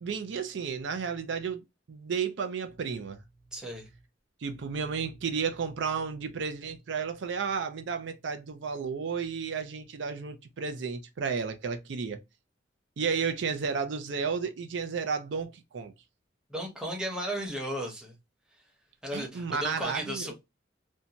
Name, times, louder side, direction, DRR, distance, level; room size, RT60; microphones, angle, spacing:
voice 1, 0.0-1.6 1.9-3.2 4.4-12.2 13.0-15.9 19.1-20.3, right 5 dB, 65° right, 0.4 m, -32 dB
voice 2, 3.5-3.9 16.5-18.1 19.0-20.3, equal, 5° right, 0.8 m, -35 dB
2.6 x 2.2 x 2.7 m
head